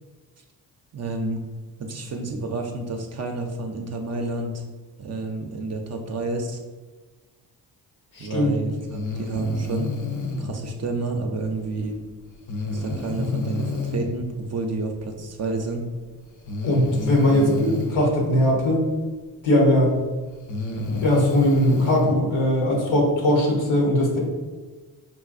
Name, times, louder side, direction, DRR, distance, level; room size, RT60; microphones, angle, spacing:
voice 1, 0.9-1.4 1.8-4.6 5.0-6.6 8.2-9.9 10.4-11.9 12.7-15.8 17.3-17.8, right 3 dB, 35° right, 3 dB, 0.5 m, -30 dB
voice 2, 8.1-8.5 16.6-18.8 19.4-20.0 21.0-24.2, left 1 dB, 70° left, -1 dB, 1.0 m, -20 dB
Breathing, 8.9-10.5 12.5-14.1 15.4-15.5 16.5-18.0 19.5-19.6 20.3-22.1, left 2 dB, 40° left, 0.6 m, -28 dB
3.6 x 2.2 x 2.5 m, 1.4 s
hypercardioid pair, 45°, 48 cm